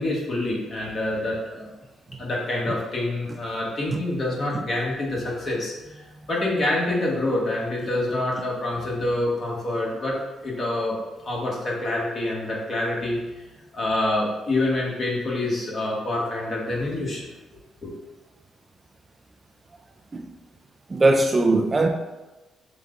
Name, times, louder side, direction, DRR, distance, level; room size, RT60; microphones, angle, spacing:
voice 1, 0.0-1.7 2.2-6.0 6.3-10.1 10.4-10.9 11.2-13.4 13.7-17.3 17.8-17.9, left 2 dB, 40° left, 1.4 m, -26 dB
voice 2, 20.9-21.9, right 2 dB, 30° right, 0.3 m, -20 dB
5.6 x 2.3 x 3.9 m
cardioid pair, 90°, 0 cm